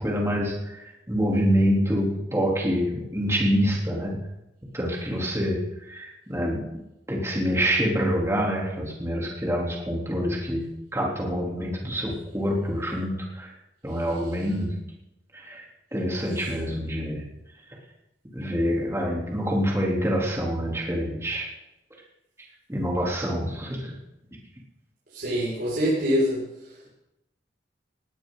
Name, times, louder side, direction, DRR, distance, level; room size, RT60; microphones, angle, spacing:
voice 1, 0.0-4.2 4.7-5.6 5.9-6.8 7.1-13.5 13.8-14.8 15.3-15.6 15.9-17.2 18.3-21.5 22.7-23.9, equal, 15° right, -2 dB, 3.3 m, -26 dB
voice 2, 25.1-26.4, equal, 60° right, -8 dB, 5.8 m, -24 dB
19.0 x 17.0 x 4.0 m, 0.92 s
head